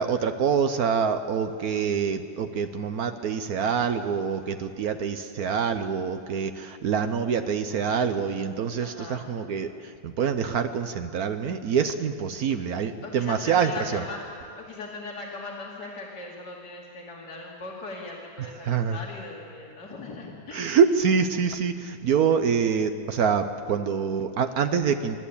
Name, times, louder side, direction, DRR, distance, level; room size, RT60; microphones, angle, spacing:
voice 1, 0.0-14.0 18.6-19.0 20.5-25.2, right 6 dB, 65° right, 8 dB, 1.3 m, -25 dB
voice 2, 8.8-9.2 13.0-20.8, left 3 dB, 80° left, -3 dB, 2.9 m, -39 dB
27.0 x 12.0 x 8.5 m, 2.4 s
omnidirectional pair, 1.8 m